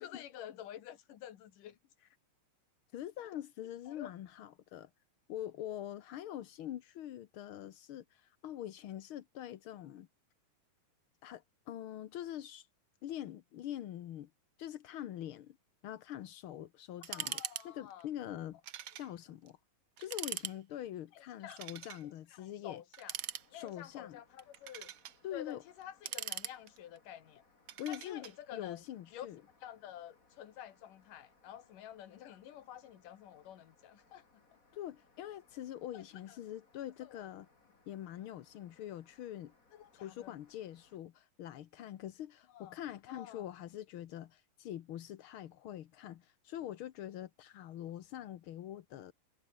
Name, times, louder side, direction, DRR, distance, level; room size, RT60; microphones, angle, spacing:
voice 1, 0.0-1.8 3.9-4.1 17.1-18.1 21.2-21.6 22.4-23.1 23.5-24.9 25.3-27.4 27.9-28.8 29.1-29.3 29.6-34.2 35.9-36.0 37.0-37.2 39.7-40.4 42.5-42.8 43.1-43.5, left 11 dB, 85° left, 3.3 m, -49 dB
voice 2, 2.9-4.9 5.3-10.1 11.2-12.7 13.0-14.3 14.6-15.6 15.8-18.6 18.9-19.6 20.0-22.8 23.5-24.2 25.2-25.6 27.8-28.3 28.5-29.4 34.7-37.5 37.9-39.5 39.9-49.1, left 12 dB, 70° left, 1.2 m, -44 dB
sound 1, 17.0-17.7 17.9-18.0 18.6-19.1 19.5-19.6 20.0-20.6 21.5-22.0 22.9-23.8 24.4-25.2 25.8-27.0 27.7-28.3, right 11 dB, 75° right, 1.1 m, -42 dB
sound 2, 23.1-41.0, left 3 dB, 25° left, 3.9 m, -69 dB
omnidirectional pair, 3.6 m